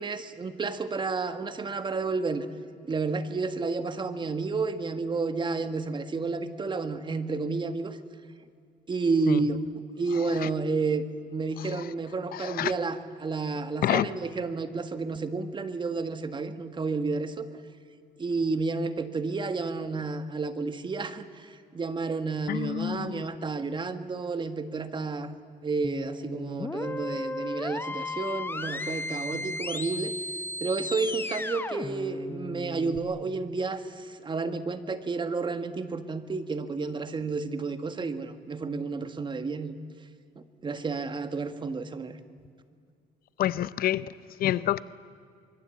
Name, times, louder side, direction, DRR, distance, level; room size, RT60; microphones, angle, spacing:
voice 1, 0.0-2.5 2.8-8.0 8.9-9.6 10.0-11.0 11.3-17.5 18.2-25.3 25.6-30.1 30.6-39.8 40.3-42.2, right 4 dB, 30° right, 10 dB, 1.6 m, -31 dB
voice 2, 12.3-12.7 13.8-14.1 22.5-23.2 29.3-29.5 43.4-44.0 44.4-44.8, left 12 dB, 60° left, 17 dB, 0.7 m, -27 dB
sound 1, 25.8-33.0, left 2 dB, 15° left, 1.1 m, -35 dB
24.5 x 23.0 x 8.5 m, 2.3 s
cardioid pair, 110°, 17 cm